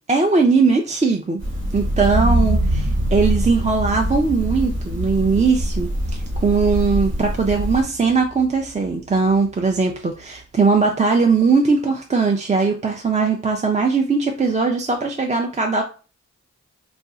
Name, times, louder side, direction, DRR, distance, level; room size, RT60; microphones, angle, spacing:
voice 1, 0.1-1.4 1.7-5.9 6.4-15.8, right 4 dB, 25° right, 2 dB, 0.3 m, -19 dB
sound 1, 1.4-7.8, equal, 80° right, 1.2 m, -24 dB
sound 2, 2.1-10.0 10.4-10.5, right 1 dB, 60° right, 1.0 m, -28 dB
2.5 x 2.3 x 3.8 m, 0.35 s
wide cardioid pair, 85°, 30 cm